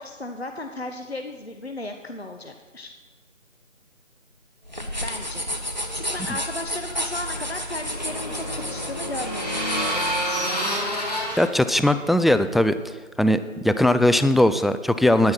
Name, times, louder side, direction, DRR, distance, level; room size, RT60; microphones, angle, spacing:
voice 1, 0.0-2.9 5.0-10.2, left 2 dB, 50° left, 5 dB, 0.9 m, -35 dB
sound 1, 4.6-10.3, equal, 35° right, 0.9 m, -31 dB
sound 2, 7.3-12.8, equal, 30° left, 2.0 m, -29 dB
voice 2, 11.4-12.7 13.2-15.3, left 1 dB, ahead, 11 dB, 0.3 m, -19 dB
10.0 x 9.5 x 5.9 m, 1.3 s
figure-of-eight pair, 170°, 39 cm